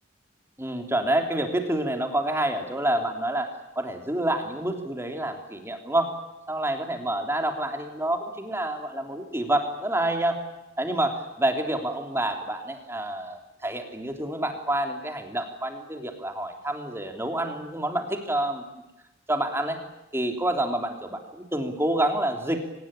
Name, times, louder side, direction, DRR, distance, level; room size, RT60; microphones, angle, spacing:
voice 1, 0.6-6.1 6.5-10.4 10.8-18.6 19.3-19.8 20.1-22.7, right 1 dB, 15° right, 5 dB, 3.4 m, -28 dB
25.0 x 20.0 x 9.0 m, 0.94 s
head